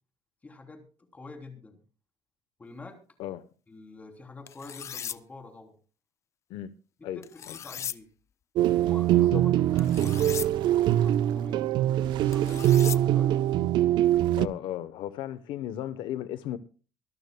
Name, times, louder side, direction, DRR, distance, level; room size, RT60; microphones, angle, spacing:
voice 1, 0.4-1.8 2.6-3.0 3.7-5.7 7.0-8.1 8.7-13.6, left 3 dB, 20° left, 3.2 m, -47 dB
sound 1, 4.5-5.2 7.2-8.0 9.8-10.5 12.3-13.0, left 9 dB, 35° left, 0.5 m, -37 dB
sound 2, 8.6-14.5, right 12 dB, 65° right, 0.6 m, -23 dB
voice 2, 14.3-16.6, left 12 dB, 75° left, 0.8 m, -35 dB
24.0 x 13.5 x 2.2 m
cardioid pair, 150°, 8 cm